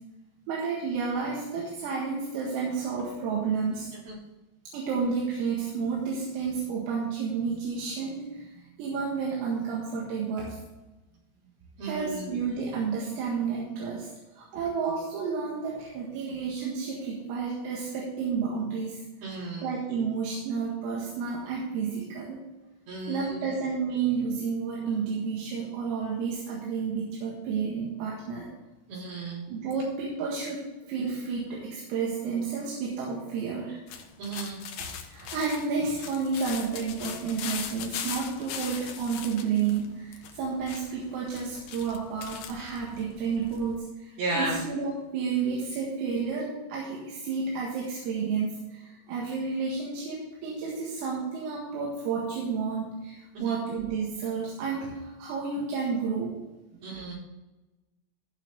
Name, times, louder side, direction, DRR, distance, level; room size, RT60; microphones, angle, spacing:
voice 1, 0.5-3.9 4.7-10.5 11.8-19.0 19.3-22.4 23.1-28.5 29.5-33.8 35.1-56.4, right 5 dB, 80° right, -4 dB, 4.4 m, -31 dB
voice 2, 11.8-12.4 19.2-19.7 22.9-23.4 28.9-29.4 34.2-34.6 44.2-44.6 53.3-53.6 56.8-57.2, right 2 dB, 50° right, -5 dB, 4.9 m, -34 dB
sound 1, 33.9-43.8, left 8 dB, 85° left, 2.2 m, -40 dB
15.5 x 6.0 x 3.9 m, 1.1 s
omnidirectional pair, 6.0 m